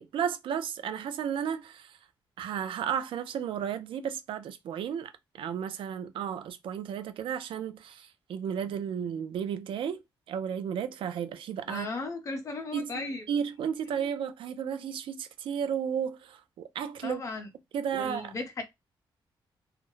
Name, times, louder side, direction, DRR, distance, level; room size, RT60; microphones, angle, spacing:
voice 1, 0.0-2.0 2.4-11.9 12.7-12.9 13.3-17.2 17.7-18.3, right 8 dB, 80° right, 0.4 m, -33 dB
voice 2, 11.7-13.2 13.8-13.9 17.0-17.5 17.9-18.6, left 3 dB, 35° left, 0.7 m, -36 dB
2.4 x 2.0 x 3.0 m
wide cardioid pair, 180°, 9 cm